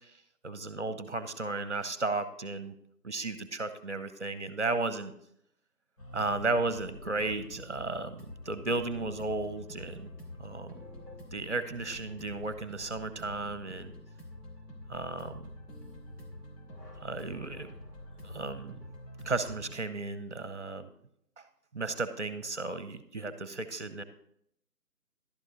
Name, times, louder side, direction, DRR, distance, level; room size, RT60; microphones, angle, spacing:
voice 1, 0.4-2.7 3.0-5.1 6.1-10.1 10.4-10.7 11.3-13.9 14.9-15.5 17.0-17.7 18.2-18.8 19.2-20.9 21.7-24.0, right 3 dB, 45° right, 12 dB, 0.8 m, -34 dB
sound 1, 6.0-19.7, left 1 dB, 85° left, 3.3 m, -47 dB
11.5 x 7.6 x 3.9 m, 0.71 s
figure-of-eight pair, 175°, 47 cm